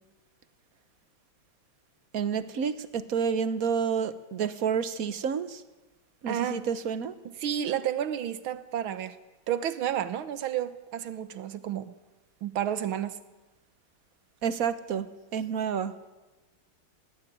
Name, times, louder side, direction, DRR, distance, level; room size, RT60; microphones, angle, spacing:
voice 1, 2.1-5.6 6.2-7.1 14.4-15.9, right 7 dB, 50° right, 13 dB, 1.3 m, -29 dB
voice 2, 6.3-6.6 7.4-9.2 9.5-11.9 12.4-13.2, right 10 dB, 80° right, 13 dB, 1.9 m, -31 dB
19.0 x 17.0 x 9.4 m, 1.1 s
omnidirectional pair, 2.2 m